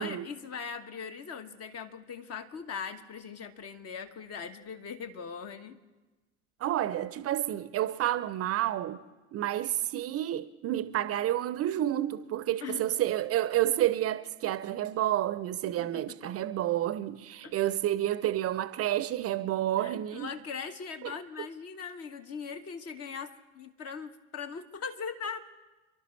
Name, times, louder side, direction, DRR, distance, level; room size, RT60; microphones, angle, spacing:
voice 1, 0.0-5.8 12.6-12.8 15.7-16.3 17.4-17.5 19.8-25.6, left 6 dB, 40° left, 1.2 m, -40 dB
voice 2, 6.6-9.0 9.3-20.3 21.0-21.1, right 13 dB, 40° right, 0.6 m, -30 dB
28.5 x 11.5 x 3.2 m
figure-of-eight pair, 65°, 39 cm